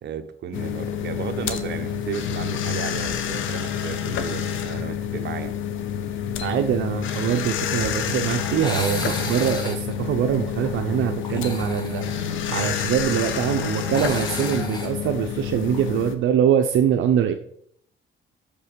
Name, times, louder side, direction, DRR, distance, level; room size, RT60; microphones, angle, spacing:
voice 1, 0.0-5.5, right 8 dB, 60° right, 7 dB, 1.1 m, -34 dB
sound 1, 0.5-16.2, left 8 dB, 80° left, 1.0 m, -28 dB
sound 2, 1.9-2.2 2.5-2.6 3.8-4.0 7.1-15.9, left 1 dB, 20° left, 1.9 m, -36 dB
voice 2, 6.4-12.1 12.5-17.3, right 9 dB, 80° right, 5 dB, 0.7 m, -23 dB
6.7 x 5.5 x 6.8 m, 0.64 s
cardioid pair, 90°, 20 cm